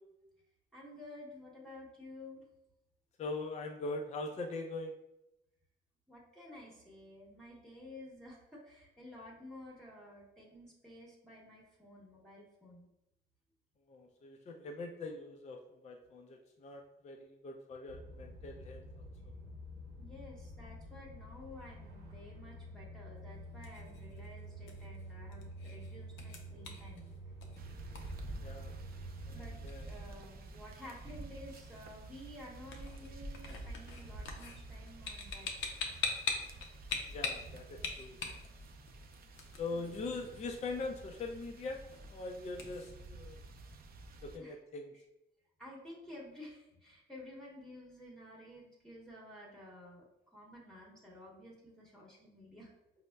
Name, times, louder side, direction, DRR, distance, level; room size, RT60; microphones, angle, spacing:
voice 1, 0.7-2.4 6.1-12.9 20.0-27.0 29.3-29.6 29.9-35.5 39.7-40.0 44.4-44.6 45.6-50.0 50.3-52.7, left 1 dB, 5° left, -5 dB, 0.9 m, -52 dB
voice 2, 3.2-4.9 13.9-19.1 28.4-28.8 29.2-29.8 37.1-38.2 39.6-41.8 42.1-43.4 44.2-45.0, left 3 dB, 35° left, 3 dB, 0.4 m, -42 dB
sound 1, 17.9-29.7, right 1 dB, 75° right, 1.0 m, -49 dB
sound 2, 23.3-42.9, left 4 dB, 75° left, 0.6 m, -45 dB
sound 3, 27.6-44.4, right 2 dB, 50° right, 0.5 m, -49 dB
5.2 x 2.0 x 2.2 m, 0.89 s
cardioid pair, 90°, 20 cm